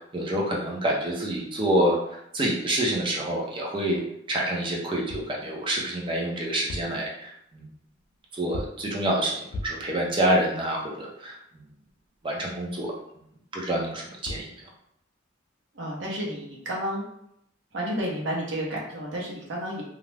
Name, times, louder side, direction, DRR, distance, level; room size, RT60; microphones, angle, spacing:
voice 1, 0.1-2.0 2.3-4.0 4.3-7.7 8.3-11.3 12.2-12.9 13.5-14.5, right 1 dB, 25° right, -2 dB, 0.5 m, -27 dB
sound 1, 5.1-5.4 6.5-7.1 8.5-8.9 9.5-9.9 14.0-14.1 14.3-14.6, left 2 dB, 85° left, 0.3 m, -37 dB
voice 2, 15.7-17.0 17.7-19.8, equal, 65° right, -3 dB, 0.8 m, -31 dB
2.4 x 2.0 x 3.2 m, 0.74 s
head